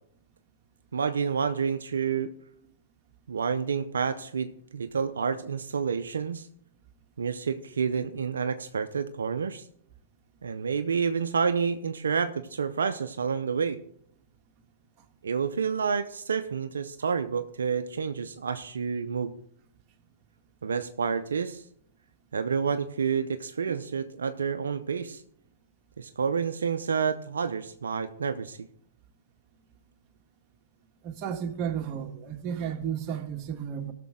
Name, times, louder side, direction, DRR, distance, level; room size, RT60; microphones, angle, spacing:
voice 1, 0.9-2.3 3.3-6.5 7.2-9.7 10.4-13.8 15.2-19.3 20.6-21.6 22.3-25.2 26.0-28.7, right 6 dB, 85° right, 0.5 m, -29 dB
voice 2, 31.0-33.9, right 8 dB, 40° right, 1.4 m, -33 dB
17.0 x 6.7 x 3.7 m
hypercardioid pair, 110°, 0 cm